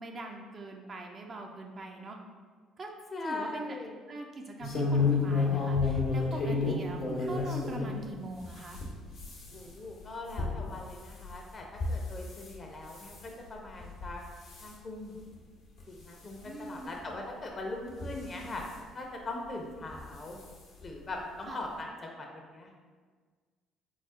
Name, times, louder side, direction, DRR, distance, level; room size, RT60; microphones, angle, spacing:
voice 1, 0.0-2.2 2.8-2.9 3.2-8.8 16.4-17.1 21.5-21.6, right 2 dB, 40° right, 2 dB, 0.5 m, -42 dB
voice 2, 3.1-3.9 9.5-14.2 14.6-15.2 15.9-18.6 18.9-20.4 20.8-22.7, left 2 dB, 40° left, 1 dB, 0.7 m, -40 dB
sound 1, 4.6-7.9 8.4-12.5 12.9-13.3 13.8-14.1 14.4-14.7 15.3-15.4 15.8-15.9 17.0-17.1 17.9-18.7 19.8-20.0 20.4-20.5 20.8-20.9, left 4 dB, 65° left, 0.9 m, -31 dB
4.0 x 2.0 x 3.7 m, 1.5 s
hypercardioid pair, 60°, 0 cm